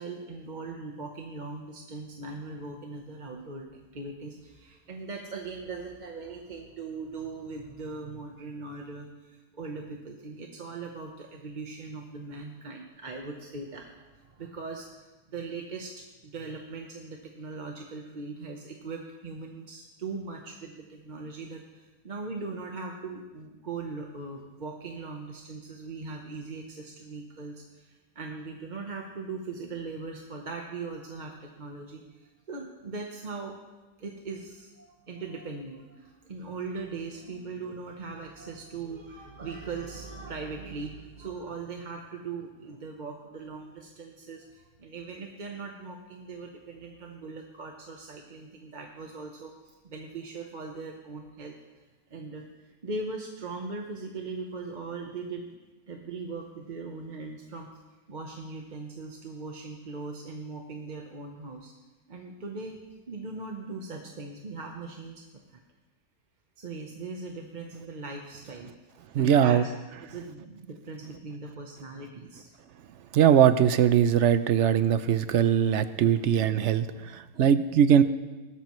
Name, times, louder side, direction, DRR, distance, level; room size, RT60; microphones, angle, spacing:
voice 1, 0.0-15.9 16.2-33.5 34.0-51.8 52.1-55.6 55.9-57.7 58.1-61.7 62.1-62.8 63.1-65.2 65.5-65.6 66.6-68.7 69.2-69.7 70.1-72.5, right 3 dB, 35° right, 1 dB, 0.9 m, -40 dB
voice 2, 69.1-69.6 73.1-78.0, right 9 dB, 65° right, 12 dB, 0.8 m, -21 dB
18.5 x 13.0 x 3.1 m, 1.2 s
omnidirectional pair, 1.5 m